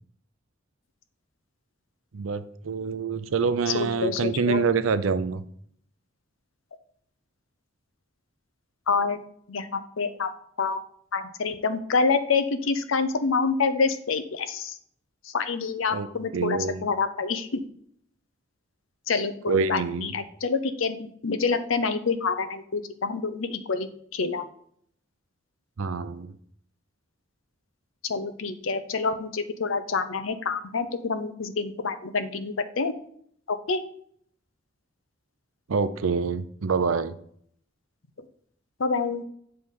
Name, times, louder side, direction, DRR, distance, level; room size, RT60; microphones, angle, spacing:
voice 1, 2.1-5.4 15.9-16.1 16.3-16.9 19.5-20.2 25.8-26.3 35.7-37.2, right 5 dB, 90° right, 13 dB, 0.5 m, -26 dB
voice 2, 3.7-4.6 8.9-9.2 9.5-10.3 10.6-10.8 11.1-14.8 15.2-17.6 19.1-24.4 28.0-32.9 33.5-33.8 38.8-39.2, left 4 dB, 85° left, 10 dB, 0.7 m, -27 dB
7.7 x 3.3 x 5.4 m, 0.64 s
head